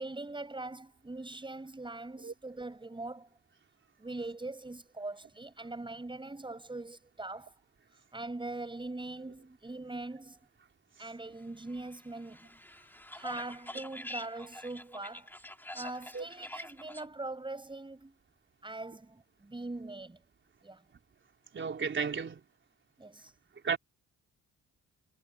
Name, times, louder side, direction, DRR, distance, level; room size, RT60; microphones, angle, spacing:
voice 1, 0.0-3.3 4.0-7.5 7.9-10.4 11.0-12.9 13.1-15.3 15.7-18.2 18.6-20.2 20.6-20.8 23.0-23.3, right 2 dB, 15° right, 6.6 m, -42 dB
sound 1, 11.7-17.1, left 1 dB, 5° left, 2.5 m, -46 dB
voice 2, 21.5-22.4 23.6-23.8, right 6 dB, 40° right, 4.0 m, -33 dB
cardioid pair, 90°, 30 cm